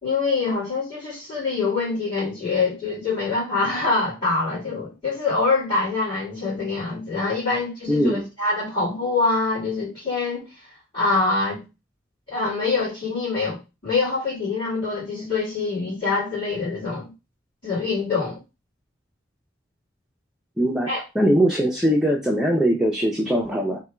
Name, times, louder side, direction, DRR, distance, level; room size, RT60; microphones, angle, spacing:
voice 1, 0.0-11.6 12.3-17.1 17.6-18.4 20.9-21.0, left 3 dB, 25° left, 2.0 m, -25 dB
voice 2, 7.9-8.3 20.6-20.9 21.2-23.8, equal, ahead, 0.5 m, -21 dB
3.4 x 2.2 x 4.2 m
head